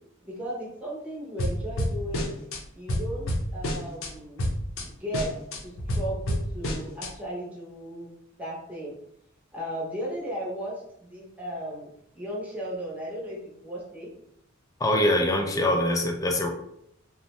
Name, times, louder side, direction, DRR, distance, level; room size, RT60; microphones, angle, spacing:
voice 1, 0.2-2.3 2.7-4.4 4.9-5.3 5.6-8.1 8.4-8.9 9.5-10.7 11.0-11.9 12.1-14.1, equal, 5° right, -6 dB, 0.8 m, -35 dB
sound 1, 1.4-2.6 2.9-4.1 4.4-4.8 5.1-7.1, equal, 85° left, 0.6 m, -29 dB
voice 2, 14.8-16.5, left 1 dB, 15° left, 3 dB, 0.3 m, -23 dB
2.6 x 2.0 x 3.0 m, 0.77 s
head